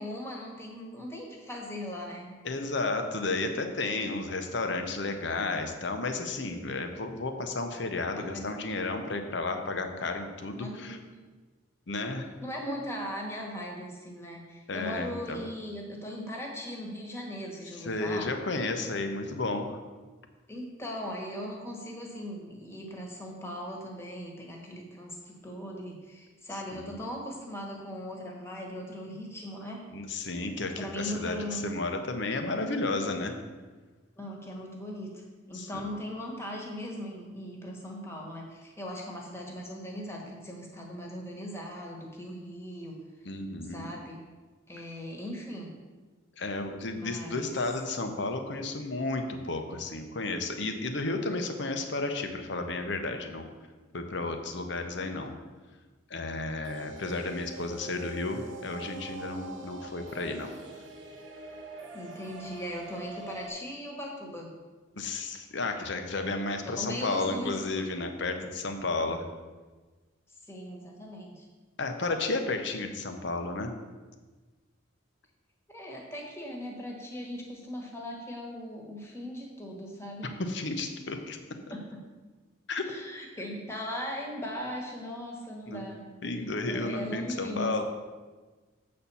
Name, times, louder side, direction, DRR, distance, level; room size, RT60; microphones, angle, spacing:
voice 1, 0.0-2.4 8.2-8.5 9.6-10.1 10.5-11.0 12.4-18.3 20.5-29.8 30.8-31.8 34.2-43.0 43.6-44.2 44.7-45.7 47.0-47.6 61.9-64.5 66.6-67.6 70.5-71.5 75.7-80.3 81.7-82.0 82.8-86.0 86.7-87.8, equal, 15° left, -1 dB, 1.4 m, -39 dB
voice 2, 2.4-11.0 11.9-12.3 14.7-15.4 17.8-19.8 26.7-26.9 29.9-33.4 35.5-35.9 43.2-43.9 46.4-53.4 53.9-55.3 56.1-60.5 65.0-69.2 71.8-73.7 80.4-81.4 82.7-83.0 85.7-85.8 86.2-87.8, left 3 dB, 60° left, 6 dB, 0.9 m, -32 dB
sound 1, 56.6-63.5, right 2 dB, 65° right, 1.1 m, -44 dB
7.7 x 4.3 x 7.0 m, 1.3 s
head